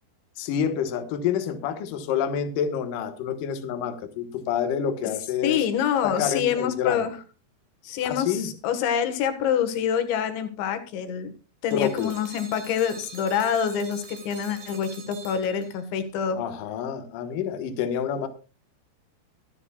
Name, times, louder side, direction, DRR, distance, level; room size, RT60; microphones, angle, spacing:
voice 1, 0.4-5.6 6.0-7.1 8.0-8.5 11.7-12.1 16.3-18.3, left 8 dB, 65° left, 7 dB, 2.3 m, -28 dB
voice 2, 5.4-7.2 7.8-11.3 11.6-16.4, left 8 dB, 85° left, 8 dB, 3.8 m, -26 dB
sound 1, 11.7-16.0, right 5 dB, 75° right, 5.5 m, -45 dB
23.5 x 9.7 x 2.3 m, 0.32 s
omnidirectional pair, 5.1 m